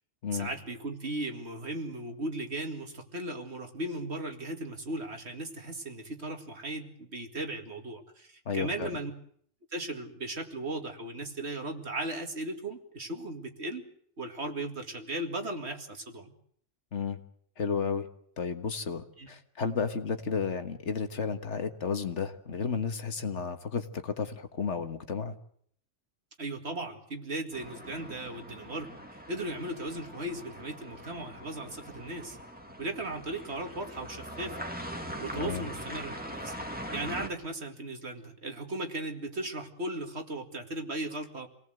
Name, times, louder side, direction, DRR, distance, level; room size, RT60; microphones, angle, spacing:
voice 1, 0.3-9.1 9.7-13.8 14.2-16.3 19.2-19.3 26.4-32.4 32.8-34.7 35.2-36.6 36.9-41.5, right 1 dB, 60° right, 5 dB, 2.5 m, -37 dB
voice 2, 8.5-8.9 16.9-17.2 17.6-18.1 18.4-25.4 35.3-35.7, left 5 dB, 70° left, 8 dB, 1.8 m, -32 dB
sound 1, 27.5-37.3, equal, 5° right, 2.0 m, -42 dB
27.0 x 18.5 x 7.9 m, 0.64 s
omnidirectional pair, 1.3 m